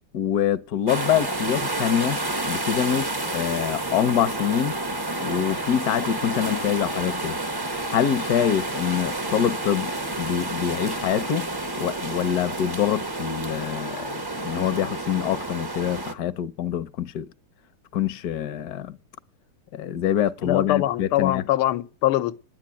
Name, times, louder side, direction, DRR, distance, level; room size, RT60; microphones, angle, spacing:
voice 1, 0.1-2.2 2.5-4.8 5.2-7.4 7.9-9.9 10.2-11.5 11.8-17.3 17.9-19.0 19.7-21.4, left 9 dB, 60° left, 1.0 m, -25 dB
sound 1, 0.9-16.1, right 2 dB, 25° right, 0.4 m, -30 dB
voice 2, 20.4-22.3, left 14 dB, 90° left, 1.7 m, -23 dB
10.5 x 8.8 x 8.8 m
omnidirectional pair, 2.3 m